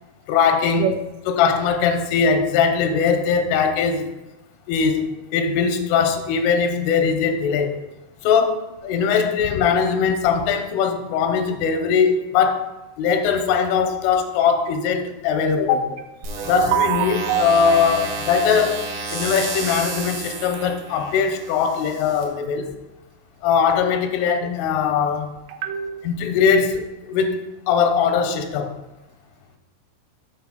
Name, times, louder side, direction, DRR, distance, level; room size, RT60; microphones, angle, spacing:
voice 1, 0.3-0.9 1.3-4.1 4.7-7.8 8.2-12.7 13.0-15.9 16.4-22.7 23.4-25.4 26.0-28.8, left 6 dB, 90° left, 6 dB, 3.2 m, -20 dB
sound 1, 16.2-22.2, right 3 dB, 60° right, 2.1 m, -31 dB
voice 2, 16.4-17.5 25.5-26.1, right 9 dB, 85° right, 5 dB, 3.4 m, -24 dB
8.0 x 4.4 x 5.7 m, 1.0 s
omnidirectional pair, 5.7 m